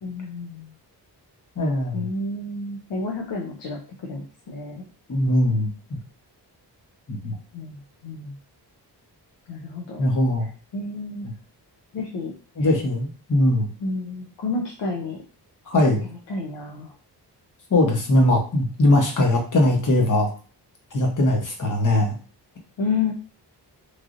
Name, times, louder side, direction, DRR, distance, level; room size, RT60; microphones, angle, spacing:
voice 1, 0.0-0.7 1.9-4.8 7.2-8.4 9.5-10.0 10.7-11.3 11.9-12.3 13.8-15.2 16.3-16.9 22.8-23.1, left 3 dB, 80° left, 0 dB, 0.8 m, -30 dB
voice 2, 1.6-2.1 5.1-6.0 7.1-7.3 10.0-10.5 12.6-13.7 15.7-16.0 17.7-20.3 20.9-22.1, left 1 dB, 45° left, 1 dB, 1.1 m, -20 dB
3.2 x 2.6 x 2.5 m, 0.38 s
cardioid pair, 75°, 42 cm